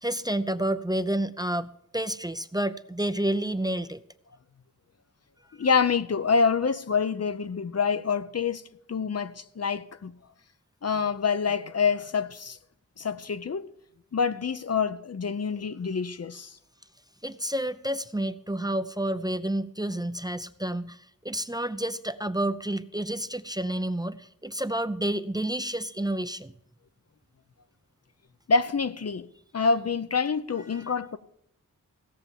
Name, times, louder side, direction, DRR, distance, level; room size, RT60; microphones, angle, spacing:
voice 1, 0.0-4.0 17.2-26.5 30.7-30.9, right 1 dB, 10° right, 0.5 m, -30 dB
voice 2, 5.6-10.1 10.8-12.6 13.0-13.7 14.1-16.6 28.5-29.3 29.5-31.2, left 5 dB, 50° left, 0.6 m, -26 dB
16.5 x 6.8 x 7.3 m
wide cardioid pair, 70°, 33 cm